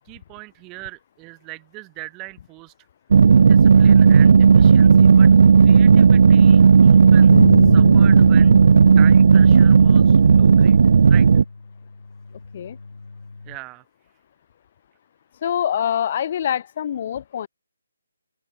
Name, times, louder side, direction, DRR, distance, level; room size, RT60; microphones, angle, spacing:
voice 1, 0.0-2.7 3.4-5.3 5.6-7.3 7.6-8.5 9.0-10.8 11.1-11.3 13.4-13.8, right 25 dB, 15° right, 1.0 m, -40 dB
sound 1, 3.1-11.4, right 5 dB, 50° right, 0.7 m, -12 dB
sound 2, 7.3-13.6, left 3 dB, 90° left, 0.9 m, -28 dB
voice 2, 15.4-17.5, left 9 dB, 30° left, 2.5 m, -25 dB
open air
hypercardioid pair, 170°, 0 cm